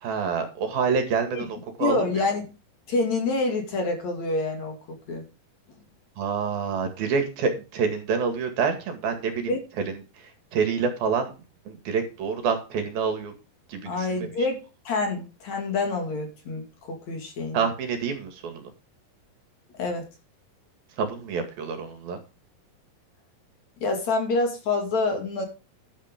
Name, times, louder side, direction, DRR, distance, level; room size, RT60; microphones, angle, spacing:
voice 1, 0.0-2.2 6.2-11.3 11.7-13.4 13.7-14.3 17.5-18.7 21.0-22.2, right 5 dB, 75° right, 6 dB, 3.9 m, -27 dB
voice 2, 1.8-2.4 2.9-5.2 9.5-9.6 13.8-14.6 14.8-17.6 19.8-20.1 23.8-25.5, left 3 dB, 50° left, 4 dB, 3.4 m, -27 dB
12.0 x 8.7 x 3.7 m, 0.31 s
omnidirectional pair, 4.3 m